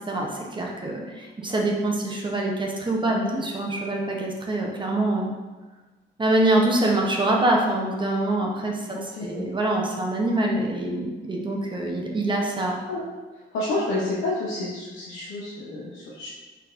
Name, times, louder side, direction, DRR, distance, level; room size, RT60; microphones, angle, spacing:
voice 1, 0.1-5.3 6.2-12.8, right 1 dB, 25° right, -1 dB, 0.7 m, -25 dB
voice 2, 3.0-3.4 8.9-9.4 12.9-13.0 13.5-16.3, left 2 dB, 90° left, -6 dB, 0.8 m, -29 dB
4.4 x 4.1 x 2.5 m, 1.2 s
cardioid pair, 90°, 20 cm